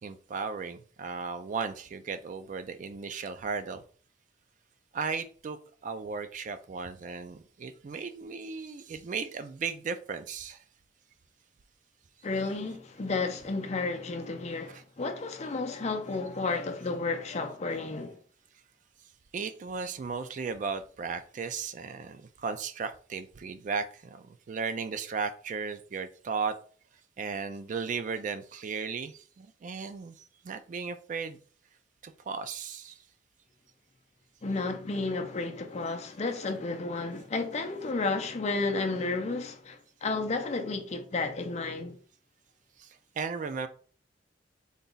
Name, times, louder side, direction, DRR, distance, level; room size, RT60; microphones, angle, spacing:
voice 1, 0.0-3.8 4.9-10.6 14.7-14.8 19.3-26.6 27.2-31.4 32.0-33.0 42.8-43.7, right 5 dB, 45° right, 0.3 m, -36 dB
voice 2, 12.2-18.2 34.4-42.0, left 3 dB, 35° left, 0.5 m, -32 dB
3.9 x 2.3 x 3.9 m
head